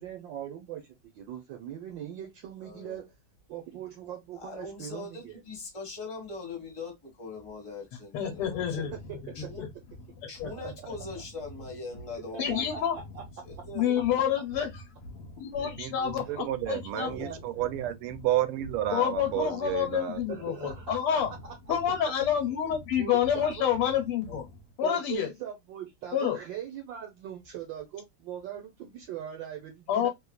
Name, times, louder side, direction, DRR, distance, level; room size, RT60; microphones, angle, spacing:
voice 1, 0.0-3.0 3.5-5.4 8.8-9.4 10.6-10.7 12.3-13.2 16.3-16.5 17.0-17.7 20.3-21.5 22.2-22.3 22.9-23.8 24.8-30.1, right 10 dB, 70° right, 1.3 m, -41 dB
voice 2, 2.6-3.1 4.4-8.9 9.3-9.7 10.3-12.8 13.4-14.0 16.9-17.3 24.3-24.4, left 3 dB, 15° left, 1.2 m, -41 dB
voice 3, 8.1-8.9 9.4-9.7 10.4-10.5 12.4-13.0 13.8-14.7 15.4-17.1 18.9-21.3 21.7-24.4 24.8-25.3 26.1-26.4 29.9-30.1, left 9 dB, 85° left, 1.7 m, -28 dB
sound 1, 8.3-24.7, left 1 dB, 65° left, 0.9 m, -47 dB
voice 4, 15.6-20.2, right 13 dB, 85° right, 1.5 m, -31 dB
3.5 x 3.1 x 2.3 m
omnidirectional pair, 2.4 m